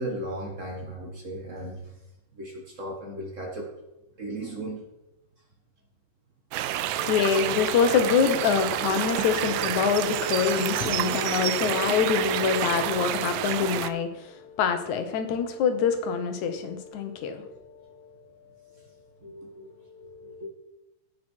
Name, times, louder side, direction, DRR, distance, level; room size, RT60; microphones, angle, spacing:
voice 1, 0.0-2.0 2.3-3.7 4.2-4.9 19.2-20.5, right 1 dB, 50° right, 0 dB, 0.9 m, -36 dB
sound 1, 6.5-13.9, right 12 dB, 85° right, 2.2 m, -28 dB
voice 2, 6.9-18.2 19.9-20.5, left 7 dB, 70° left, 7 dB, 2.2 m, -26 dB
16.5 x 6.0 x 4.5 m, 0.93 s
omnidirectional pair, 3.9 m